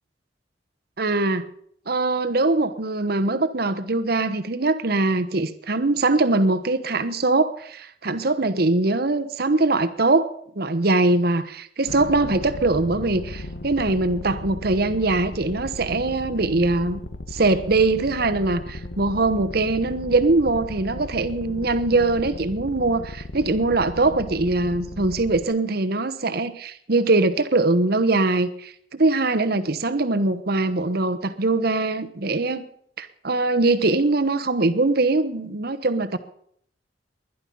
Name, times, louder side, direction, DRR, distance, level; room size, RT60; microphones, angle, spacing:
voice 1, 1.0-1.4 1.9-17.0 17.3-32.6 33.0-36.2, right 2 dB, 55° right, 12 dB, 1.1 m, -22 dB
sound 1, 11.9-25.4, left 1 dB, 80° left, 1.6 m, -36 dB
21.0 x 11.0 x 5.5 m, 0.65 s
head